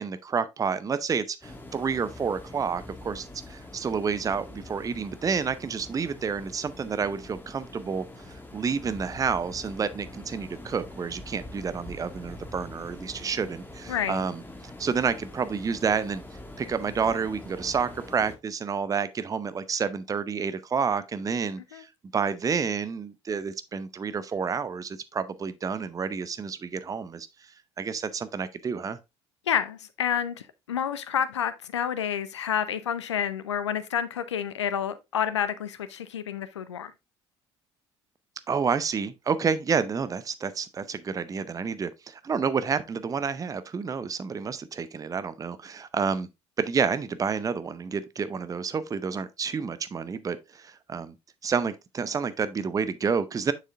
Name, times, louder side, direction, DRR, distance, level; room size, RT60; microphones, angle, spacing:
voice 1, 0.0-8.1 8.5-16.2 16.6-21.9 22.1-27.3 27.8-29.0 38.5-46.3 46.6-51.1 51.4-53.5, right 6 dB, 25° right, 0.6 m, -29 dB
sound 1, 1.4-18.4, left 1 dB, 15° left, 1.7 m, -44 dB
voice 2, 13.9-14.2 21.7-21.8 29.5-30.4 30.7-36.9, left 8 dB, 80° left, 0.5 m, -29 dB
7.3 x 6.5 x 2.5 m
figure-of-eight pair, 55°, 15 cm